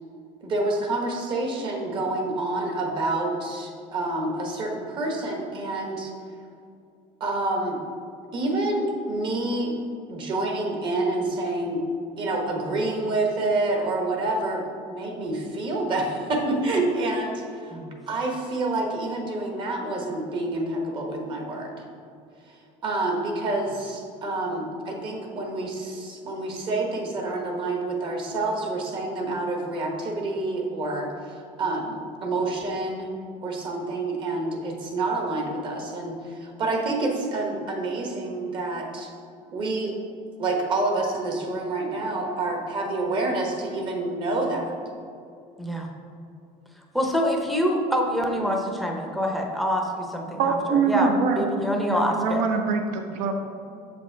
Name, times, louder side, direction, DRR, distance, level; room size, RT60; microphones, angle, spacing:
voice 1, 0.4-6.1 7.2-7.8 8.3-9.7 10.1-11.8 12.2-14.6 14.9-17.8 18.1-21.8 22.4-33.1 33.4-39.1 39.5-39.9 40.4-44.7, right 2 dB, 35° right, 1 dB, 1.1 m, -28 dB
voice 2, 45.6-45.9 46.9-52.4, equal, ahead, 1 dB, 0.7 m, -26 dB
voice 3, 50.4-53.3, right 4 dB, 65° right, 5 dB, 0.8 m, -24 dB
7.2 x 5.3 x 4.5 m, 2.5 s
cardioid pair, 165°, 15 cm